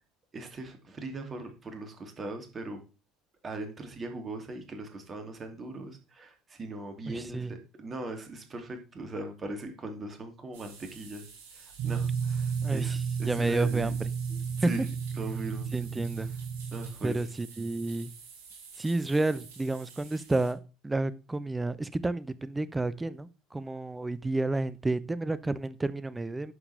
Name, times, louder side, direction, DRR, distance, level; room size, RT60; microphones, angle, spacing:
voice 1, 0.3-2.8 3.4-11.2 11.5-14.0 14.3-14.8 15.1-16.0 16.7-17.2, right 2 dB, 30° right, 2.8 m, -40 dB
voice 2, 7.1-7.5 12.6-13.0 13.2-13.9 14.6-14.7 15.7-16.3 17.0-18.1 18.8-20.6 20.8-26.5, right 2 dB, 15° right, 0.8 m, -30 dB
sound 1, 10.5-20.5, right 5 dB, 65° right, 5.2 m, -49 dB
sound 2, 11.8-16.9, right 6 dB, 45° right, 1.8 m, -32 dB
11.0 x 7.0 x 3.5 m
figure-of-eight pair, 60°, 0 cm